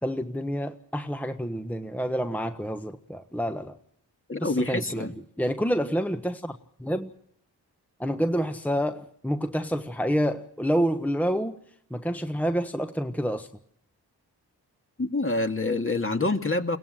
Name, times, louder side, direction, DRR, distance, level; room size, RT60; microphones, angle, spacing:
voice 1, 0.0-3.8 4.4-5.1 5.4-6.5 6.8-7.1 8.0-11.6 11.9-13.5, equal, 5° left, 8 dB, 1.3 m, -28 dB
voice 2, 4.3-5.1 15.0-16.8, left 2 dB, 30° left, 5 dB, 2.3 m, -26 dB
22.5 x 17.0 x 7.7 m, 0.71 s
cardioid pair, 40°, 40 cm